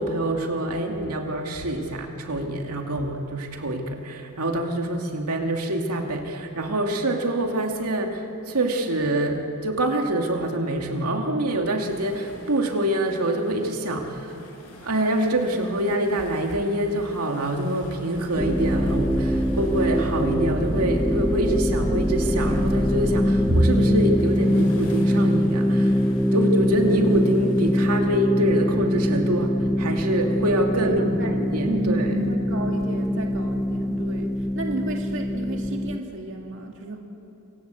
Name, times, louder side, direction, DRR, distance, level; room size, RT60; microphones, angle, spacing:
voice 1, 0.0-14.4 14.8-26.0 26.3-32.1, right 1 dB, 80° right, 2 dB, 2.5 m, -25 dB
sound 1, 11.8-27.7, left 1 dB, 80° left, 7.0 m, -48 dB
sound 2, 18.4-36.0, equal, ahead, 0.9 m, -23 dB
voice 2, 30.8-31.3 31.6-37.0, right 1 dB, 60° right, 2 dB, 2.2 m, -32 dB
27.5 x 25.0 x 8.3 m, 2.9 s
head